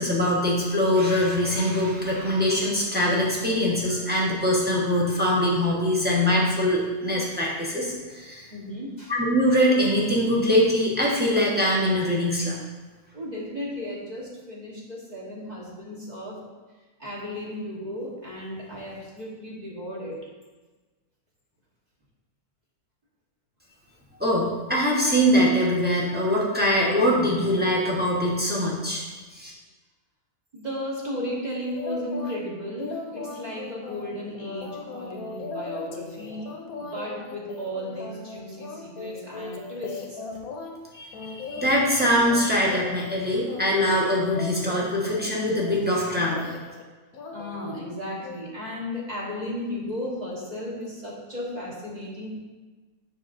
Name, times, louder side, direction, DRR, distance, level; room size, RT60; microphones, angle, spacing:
voice 1, 0.0-8.5 9.1-12.6 24.2-29.0 29.3-29.5 40.9-46.4, equal, 10° right, -5 dB, 0.9 m, -23 dB
voice 2, 8.5-9.1 13.1-16.4 17.0-20.2 30.5-40.2 47.3-52.4, left 1 dB, 30° right, -5 dB, 1.3 m, -35 dB
sound 1, 31.7-32.4 32.8-40.7 41.1-42.4 42.7-43.2 43.5-46.8 47.1-47.8 48.2-48.4, left 4 dB, 75° left, 1.2 m, -38 dB
6.9 x 5.8 x 2.6 m, 1.3 s
omnidirectional pair, 1.6 m